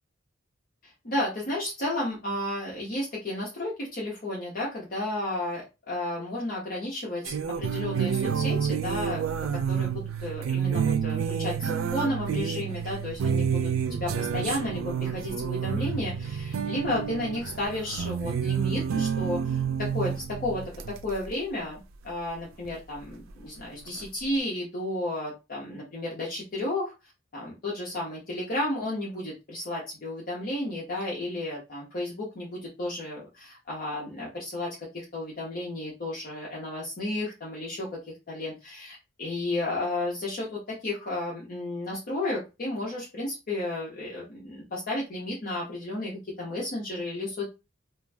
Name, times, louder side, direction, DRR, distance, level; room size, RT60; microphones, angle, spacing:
voice 1, 0.8-26.9 27.3-34.7 34.9-38.0 38.3-47.5, left 1 dB, 45° left, -4 dB, 0.8 m, -33 dB
sound 1, 7.3-21.3 22.7-22.8 23.9-24.0, right 7 dB, 90° right, 0.4 m, -29 dB
2.5 x 2.2 x 3.3 m, 0.26 s
head